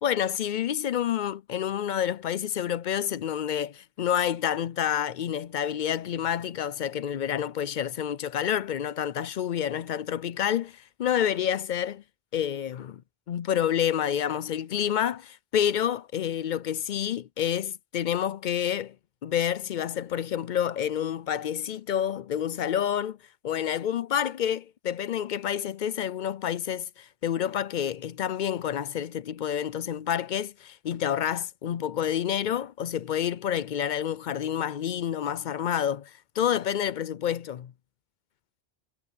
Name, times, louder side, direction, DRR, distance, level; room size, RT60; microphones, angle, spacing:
voice 1, 0.0-12.0 12.3-13.0 13.3-19.0 19.2-23.2 23.4-37.7, left 9 dB, 60° left, 0.5 m, -28 dB
omnidirectional pair, 1.2 m